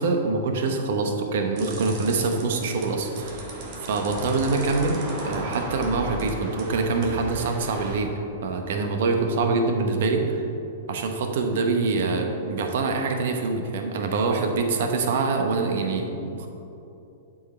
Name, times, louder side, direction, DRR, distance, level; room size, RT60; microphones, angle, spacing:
voice 1, 0.0-3.4 3.9-10.4 10.9-16.5, right 3 dB, 65° right, 4 dB, 0.9 m, -25 dB
sound 1, 1.6-8.0, right 2 dB, 40° right, 1.4 m, -35 dB
8.1 x 4.9 x 4.3 m, 2.8 s
hypercardioid pair, 155°, 0 cm